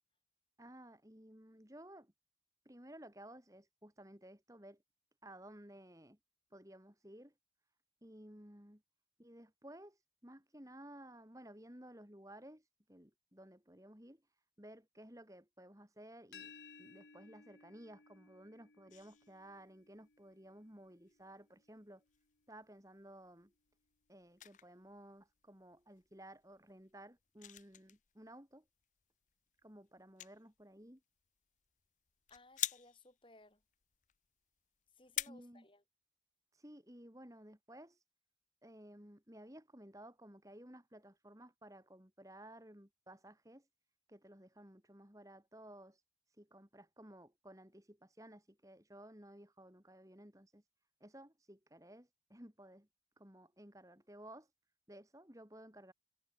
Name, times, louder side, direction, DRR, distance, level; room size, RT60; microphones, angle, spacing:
voice 1, 0.6-2.1 2.6-4.8 5.2-6.2 6.5-7.3 8.0-8.8 9.2-16.5 16.8-22.0 22.5-23.5 24.1-28.6 29.6-31.0 35.3-35.7 36.5-38.0 38.6-43.7 44.1-50.7 51.0-52.9 53.2-54.5 54.9-55.9, right 1 dB, 20° right, 4.3 m, -56 dB
sound 1, 16.3-22.1, left 5 dB, 85° left, 3.4 m, -61 dB
sound 2, 18.9-35.3, left 13 dB, 45° left, 0.7 m, -49 dB
voice 2, 32.3-33.6 35.0-35.8, left 2 dB, 30° left, 5.5 m, -62 dB
head